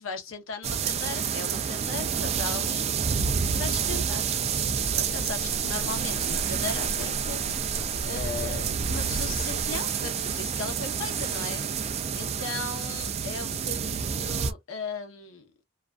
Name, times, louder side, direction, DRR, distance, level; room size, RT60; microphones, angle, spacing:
voice 1, 0.0-3.1 3.5-7.6 8.0-15.5, left 4 dB, 90° left, 0.8 m, -38 dB
sound 1, 0.6-14.5, right 7 dB, 30° right, 0.3 m, -29 dB
sound 2, 4.7-13.3, equal, 55° left, 1.1 m, -40 dB
2.5 x 2.2 x 2.4 m
head